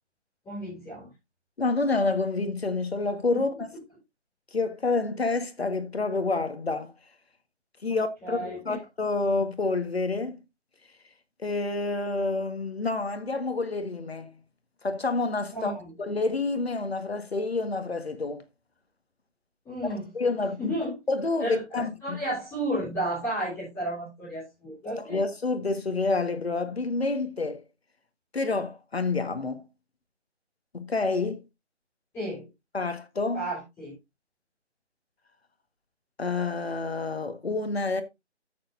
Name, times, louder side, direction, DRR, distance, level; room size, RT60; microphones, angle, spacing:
voice 1, 0.4-1.1 3.3-3.4 7.9-8.8 15.5-15.9 19.6-20.1 20.6-20.9 21.4-25.2 32.1-32.5 33.3-33.9, right 1 dB, 5° left, 4.0 m, -33 dB
voice 2, 1.6-3.7 4.5-6.9 7.8-10.4 11.4-14.4 14.8-15.7 16.0-18.4 19.9-20.7 21.1-22.2 25.0-27.6 28.3-29.6 30.7-31.4 32.7-33.5 36.2-38.0, left 3 dB, 60° left, 1.7 m, -28 dB
13.5 x 6.9 x 2.7 m
figure-of-eight pair, 155°, 35 cm